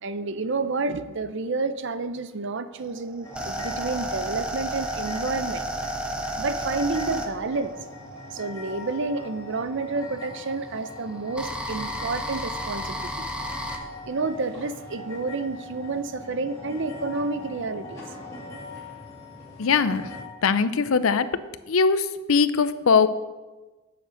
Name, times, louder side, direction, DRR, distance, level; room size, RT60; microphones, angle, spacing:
voice 1, 0.0-5.6 6.4-7.7 8.3-13.2 14.1-18.0, right 3 dB, 60° right, 12 dB, 0.6 m, -29 dB
sound 1, 2.8-9.0 10.0-13.8, right 1 dB, 5° right, 0.9 m, -32 dB
sound 2, 3.2-20.2, left 2 dB, 15° left, 2.3 m, -41 dB
voice 2, 19.6-20.1 20.4-21.3 21.7-23.1, left 5 dB, 80° left, 14 dB, 0.6 m, -21 dB
9.3 x 6.6 x 6.3 m, 1.2 s
head